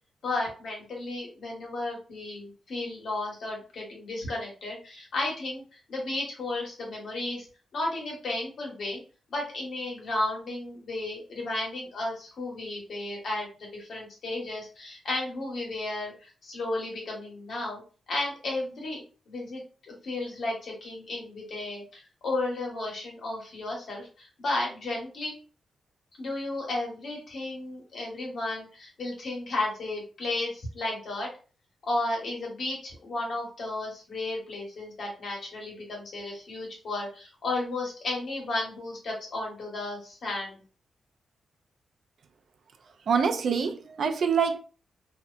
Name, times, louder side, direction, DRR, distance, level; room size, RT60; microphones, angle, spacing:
voice 1, 0.2-7.5 7.7-9.0 9.3-17.8 18.1-19.6 19.9-25.4 26.2-31.3 31.9-40.6, left 2 dB, 65° left, 1.2 m, -33 dB
voice 2, 43.1-44.6, right 6 dB, 65° right, 0.4 m, -25 dB
2.7 x 2.0 x 2.4 m
cardioid pair, 90°, 0 cm